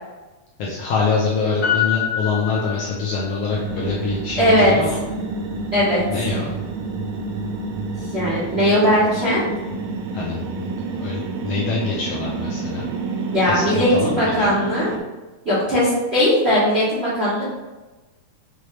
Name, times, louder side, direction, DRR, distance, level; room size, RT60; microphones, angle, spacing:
voice 1, 0.6-5.0 6.1-6.5 10.1-10.7 11.0-12.9 13.4-14.4, left 4 dB, 75° left, -4 dB, 1.5 m, -25 dB
Piano, 1.6-3.4 3.7-3.8, left 10 dB, 55° left, 0.4 m, -25 dB
sound 1, 3.5-15.0, right 3 dB, 85° right, 1.3 m, -29 dB
voice 2, 4.4-4.7 5.7-6.0 8.1-9.4 13.3-14.9 15.4-17.4, equal, 65° right, -9 dB, 0.6 m, -18 dB
6.2 x 2.7 x 3.2 m, 1.1 s
omnidirectional pair, 3.4 m